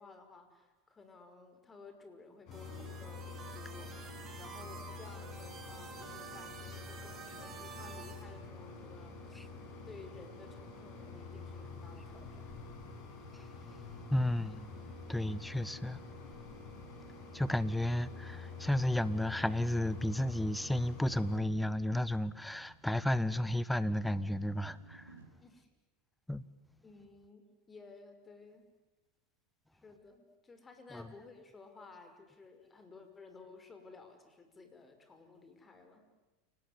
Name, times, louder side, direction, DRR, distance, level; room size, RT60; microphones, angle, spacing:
voice 1, 0.0-4.0 4.4-9.6 9.9-12.6 25.4-25.7 26.8-28.7 29.7-36.1, left 4 dB, 20° left, 5.7 m, -55 dB
Mechanisms, 2.5-21.4, left 4 dB, 50° left, 7.4 m, -47 dB
sound 1, 2.5-8.2, right 5 dB, 30° right, 7.3 m, -50 dB
voice 2, 14.1-14.8 15.1-16.0 17.3-25.1 26.3-26.4 30.9-31.1, left 1 dB, 5° left, 1.2 m, -33 dB
sound 2, 21.1-25.3, right 4 dB, 85° right, 5.0 m, -62 dB
29.5 x 20.0 x 9.8 m
hypercardioid pair, 90°, 0 cm